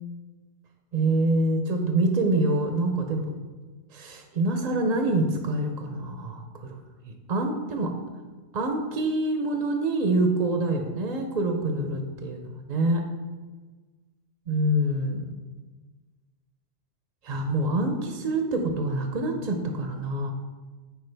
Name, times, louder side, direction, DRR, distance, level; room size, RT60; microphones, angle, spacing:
voice 1, 0.9-3.3 3.9-7.9 8.5-13.0 14.5-15.3 17.2-20.3, right 2 dB, 50° right, 4 dB, 0.5 m, -26 dB
8.2 x 4.6 x 3.3 m, 1.3 s
omnidirectional pair, 1.2 m